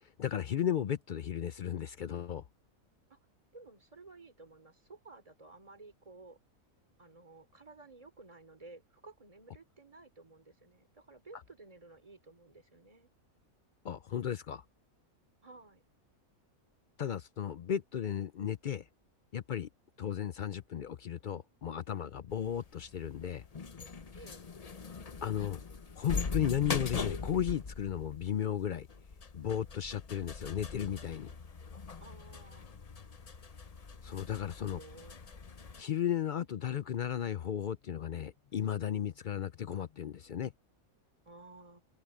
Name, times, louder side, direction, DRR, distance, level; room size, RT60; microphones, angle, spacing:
voice 1, 0.0-2.4 13.8-14.6 17.0-18.9 19.3-19.7 20.0-23.4 25.2-25.6 26.0-28.9 29.3-31.3 34.0-34.8 35.8-40.5, left 9 dB, 65° left, 0.5 m, -35 dB
voice 2, 3.5-6.4 7.0-13.1 15.4-15.8 24.1-24.4 32.0-32.8 34.3-35.2 41.2-41.8, right 3 dB, 25° right, 3.2 m, -54 dB
sound 1, 22.3-35.8, left 5 dB, 35° left, 0.8 m, -41 dB
omnidirectional pair, 1.4 m